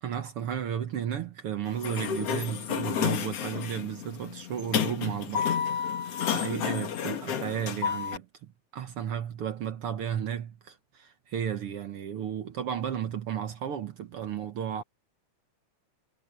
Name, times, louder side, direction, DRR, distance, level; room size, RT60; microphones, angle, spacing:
voice 1, 0.0-6.0 6.3-14.8, right 9 dB, 60° right, 1.7 m, -34 dB
Sliding door, 1.7-8.2, left 8 dB, 60° left, 2.3 m, -31 dB
omnidirectional pair, 3.4 m